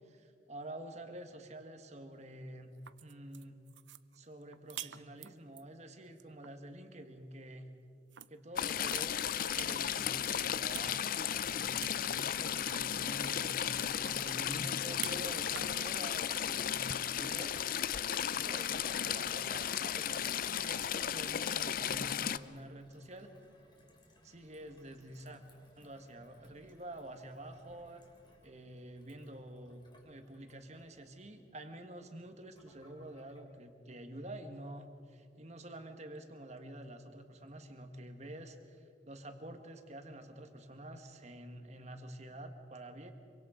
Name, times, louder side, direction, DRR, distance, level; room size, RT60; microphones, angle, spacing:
voice 1, 0.0-2.7 3.0-3.6 4.1-7.7 8.3-17.6 18.3-23.3 24.2-25.4 25.8-28.0 28.4-43.1, right 1 dB, 35° right, 6 dB, 1.7 m, -48 dB
sound 1, 2.7-5.6 6.1-6.5 8.1-8.3 8.7-9.8 10.2-10.9 11.2-11.3 11.8-12.0 12.2-15.3 15.5-15.9 17.3-17.6, right 12 dB, 70° right, 0.6 m, -48 dB
Stream / Trickle dribble, 8.6-22.4, left 9 dB, 45° left, 0.5 m, -35 dB
Gurgling / Water tap faucet / Sink (filling or washing), 13.5-33.4, left 1 dB, 25° left, 2.9 m, -65 dB
26.0 x 24.0 x 5.1 m, 2.5 s
head